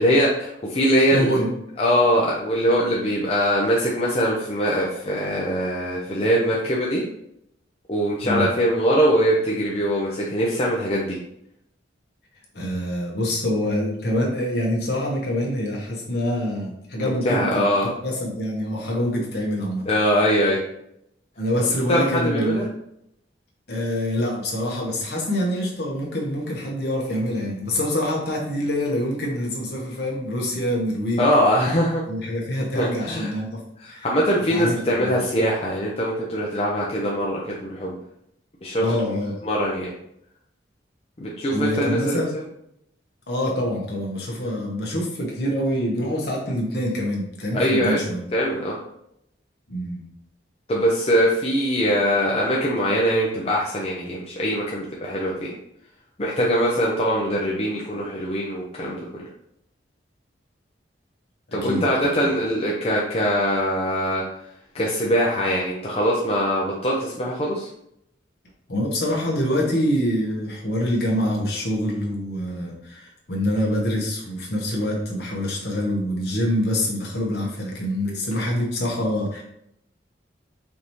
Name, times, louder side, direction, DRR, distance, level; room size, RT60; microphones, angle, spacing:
voice 1, 0.0-1.4 1.8-7.0 7.9-11.2 17.0-17.9 19.9-20.6 21.9-22.7 31.2-32.0 32.8-33.3 33.8-38.0 38.6-39.0 39.5-39.9 41.2-42.2 47.5-48.0 48.3-48.8 50.7-55.5 56.2-59.2 61.5-64.2 64.7-67.7, equal, 30° left, -4 dB, 0.6 m, -22 dB
voice 2, 1.1-1.5 8.2-8.5 12.5-19.9 21.4-22.6 23.7-31.3 32.1-33.6 33.9-34.1 34.5-35.2 38.8-39.4 41.5-42.3 43.3-48.3 49.7-50.1 61.5-62.1 68.7-79.4, equal, 60° left, -2 dB, 1.2 m, -25 dB
5.1 x 2.7 x 3.1 m, 0.76 s
head